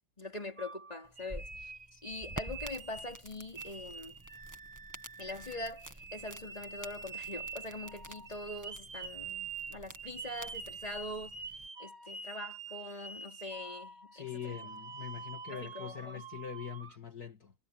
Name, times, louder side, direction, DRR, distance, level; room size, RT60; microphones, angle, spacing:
voice 1, 0.2-1.7 2.0-4.2 5.2-11.4 11.8-14.6 15.2-16.2, left 2 dB, 20° left, 3.8 m, -43 dB
sound 1, 0.6-3.2 3.5-17.0, right 5 dB, 35° right, 1.7 m, -46 dB
sound 2, 1.0-11.7, right 1 dB, 10° right, 1.5 m, -50 dB
voice 2, 14.1-17.5, left 8 dB, 50° left, 2.6 m, -43 dB
omnidirectional pair, 2.1 m